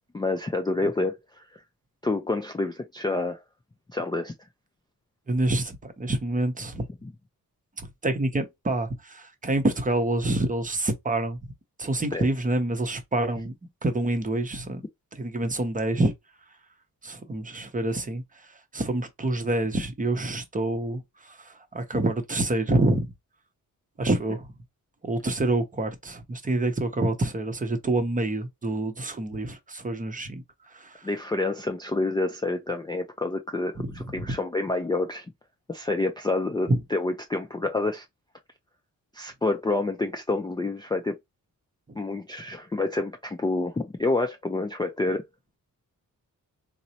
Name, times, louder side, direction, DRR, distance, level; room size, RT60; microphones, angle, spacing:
voice 1, 0.1-1.6 2.0-3.4 3.9-4.3 7.0-7.1 12.1-12.3 31.0-35.3 35.7-38.1 39.1-41.2 42.0-45.3, left 2 dB, 15° left, 0.3 m, -28 dB
voice 2, 5.3-6.8 7.8-11.4 11.8-13.5 13.8-14.8 15.1-16.1 17.0-18.2 18.7-23.1 24.0-24.5 25.0-30.4 30.7-31.1 33.8-34.4 36.7-36.8, right 2 dB, 25° right, 0.7 m, -27 dB
3.9 x 2.0 x 2.7 m
wide cardioid pair, 145°, 35 cm